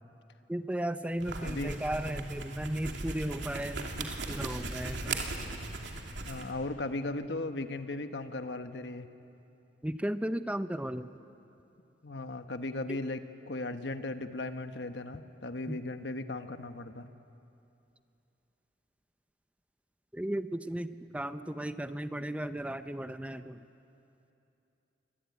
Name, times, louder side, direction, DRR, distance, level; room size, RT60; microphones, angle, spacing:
voice 1, 0.5-5.2 9.8-11.1 12.9-13.0 15.7-15.8 20.1-23.7, right 1 dB, 10° right, 10 dB, 0.6 m, -35 dB
sound 1, 1.1-6.5, right 3 dB, 85° right, 2.8 m, -38 dB
voice 2, 1.4-1.7 6.2-9.1 12.0-17.1, left 2 dB, 75° left, 8 dB, 1.3 m, -37 dB
26.0 x 23.5 x 9.5 m, 2.8 s
head